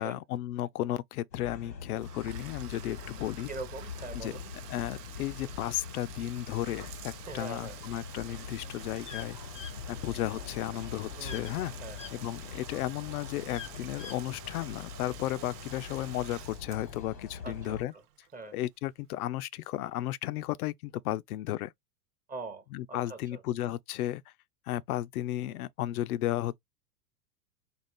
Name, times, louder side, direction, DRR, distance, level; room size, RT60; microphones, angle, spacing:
voice 1, 0.0-3.5 4.1-4.3 4.7-9.4 9.9-11.7 12.1-17.9 18.5-21.7 22.7-24.2 24.7-26.6, left 14 dB, 65° left, 0.5 m, -34 dB
sound 1, 1.3-17.8, left 6 dB, 90° left, 1.3 m, -44 dB
Bathtub (filling or washing), 1.9-18.6, right 12 dB, 70° right, 0.6 m, -50 dB
voice 2, 3.5-4.5 7.3-7.8 11.2-12.0 17.4-18.0 18.3-18.5 22.3-23.4, right 3 dB, 15° right, 0.7 m, -43 dB
sound 2, 9.0-9.3 9.5-9.7 11.2-11.5 11.9-12.1 13.5-14.2, left 8 dB, 15° left, 0.4 m, -43 dB
4.3 x 2.3 x 3.3 m
hypercardioid pair, 95°, 49 cm